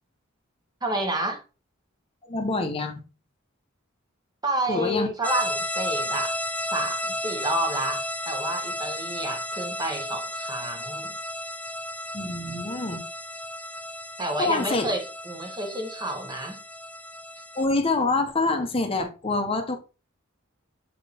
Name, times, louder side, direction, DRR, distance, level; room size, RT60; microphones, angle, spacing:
voice 1, 0.8-1.4 4.4-6.4 6.7-11.1 14.2-16.6, right 1 dB, 20° right, 1.1 m, -30 dB
voice 2, 2.3-3.0 4.7-5.1 12.1-13.0 14.4-14.9 17.6-19.8, left 3 dB, 30° left, 0.9 m, -26 dB
sound 1, 5.2-17.7, left 1 dB, 5° left, 0.4 m, -33 dB
6.7 x 4.3 x 3.4 m
head